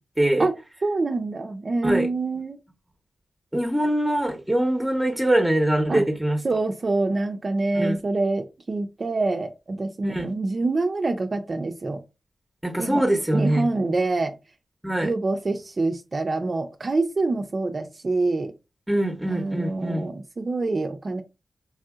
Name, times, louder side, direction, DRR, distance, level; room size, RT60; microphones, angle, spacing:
voice 1, 0.8-2.6 5.9-6.0 6.4-12.0 12.8-13.0 13.3-14.3 15.0-18.5 19.3-21.2, right 3 dB, 45° right, 0.4 m, -26 dB
voice 2, 3.5-6.4 7.7-8.0 10.0-10.3 12.6-13.7 14.8-15.1 18.9-20.1, right 1 dB, 5° right, 0.8 m, -23 dB
3.3 x 2.7 x 2.3 m
cardioid pair, 65°, 0 cm